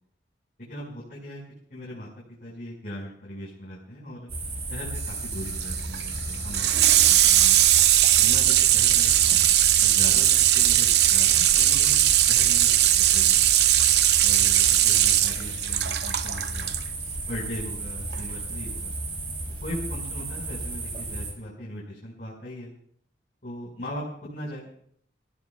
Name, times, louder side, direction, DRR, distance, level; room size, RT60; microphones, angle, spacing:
voice 1, 0.7-1.4 1.7-2.1 2.4-4.3 4.7-7.6 8.2-9.4 9.8-12.0 12.3-13.5 14.2-16.7 17.3-18.9 19.6-22.7 23.4-24.7, equal, 45° left, -6 dB, 5.0 m, -39 dB
sound 1, 4.3-21.3, right 2 dB, 30° right, 4.3 m, -34 dB
Water tap faucet / Sink (filling or washing), 5.0-16.8 18.1-18.2, right 12 dB, 65° right, 0.6 m, -20 dB
28.0 x 15.5 x 2.3 m, 0.65 s
head